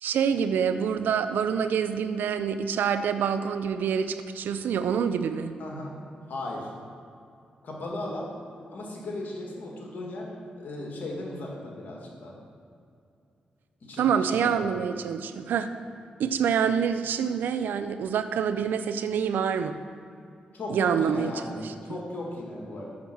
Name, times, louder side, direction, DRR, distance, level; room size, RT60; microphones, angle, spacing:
voice 1, 0.0-5.5 14.0-15.7 16.2-19.8 20.7-21.3 21.6-21.7, right 7 dB, 85° right, 10 dB, 0.5 m, -26 dB
voice 2, 5.6-5.9 6.3-6.7 7.6-8.3 8.7-12.4 13.8-15.1 20.5-22.8, left 1 dB, 70° left, -1 dB, 2.0 m, -36 dB
7.2 x 6.3 x 6.0 m, 2.5 s
cardioid pair, 55°, 3 cm